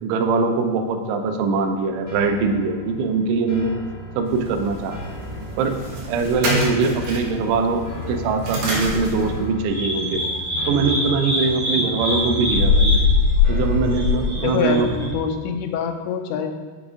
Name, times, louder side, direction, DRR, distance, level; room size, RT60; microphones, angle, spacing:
voice 1, 0.0-3.7 4.2-5.0 5.6-5.7 6.1-10.2 10.7-13.0 13.5-14.9, right 4 dB, 85° right, 5 dB, 3.2 m, -22 dB
sound 1, 1.5-15.5, left 3 dB, 55° left, 1.1 m, -38 dB
sound 2, 4.2-9.5, right 1 dB, 65° right, 1.9 m, -29 dB
sound 3, 9.7-15.1, left 3 dB, 30° right, 2.6 m, -21 dB
voice 2, 14.4-16.5, left 7 dB, 80° left, 6 dB, 2.7 m, -25 dB
6.9 x 5.5 x 5.0 m, 1.4 s
omnidirectional pair, 5.4 m